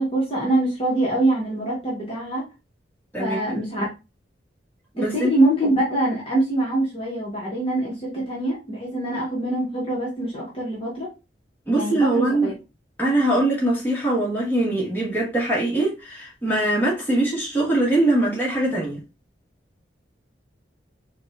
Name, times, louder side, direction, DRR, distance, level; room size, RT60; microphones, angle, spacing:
voice 1, 0.0-2.4 3.2-3.9 5.0-11.1 11.7-12.5, right 1 dB, 30° left, 1.1 m, -24 dB
voice 2, 4.9-5.3 11.7-12.5 13.0-19.0, right 1 dB, 10° left, 1.4 m, -22 dB
4.7 x 2.3 x 2.4 m
head